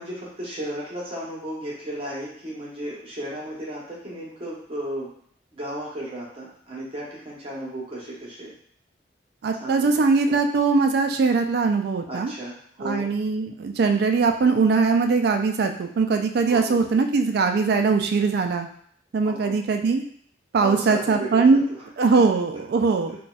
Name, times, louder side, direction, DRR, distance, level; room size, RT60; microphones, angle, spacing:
voice 1, 0.0-5.1 5.5-8.5 9.5-9.9 10.3-10.4 12.1-13.1 16.5-16.9 19.2-19.6 20.6-21.8, right 1 dB, 35° right, -6 dB, 0.9 m, -34 dB
voice 2, 9.4-12.3 12.8-18.7 19.1-20.0 20.5-21.6 22.0-23.2, right 4 dB, 60° right, 6 dB, 0.3 m, -21 dB
4.0 x 2.3 x 2.3 m, 0.62 s
head